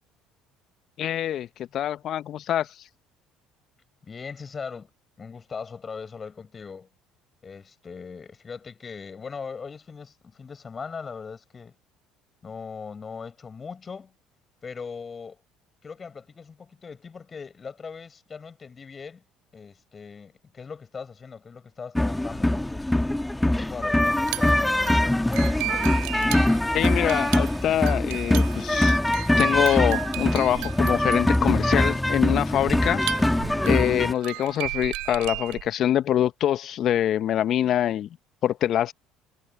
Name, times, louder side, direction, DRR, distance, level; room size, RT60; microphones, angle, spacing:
voice 1, 1.0-1.5 1.7-2.7 26.7-29.0 29.4-33.0 33.6-38.1 38.4-38.9, left 11 dB, 55° left, 1.2 m, -24 dB
voice 2, 4.0-4.9 5.2-6.9 7.4-11.7 12.4-14.1 14.6-15.4 15.8-19.2 19.5-22.9 23.5-25.2, left 5 dB, 35° left, 7.3 m, -39 dB
sound 1, 21.9-34.1, left 1 dB, 10° left, 2.1 m, -23 dB
sound 2, 24.2-35.7, right 24 dB, 70° right, 3.9 m, -35 dB
hypercardioid pair, 65°, 0 cm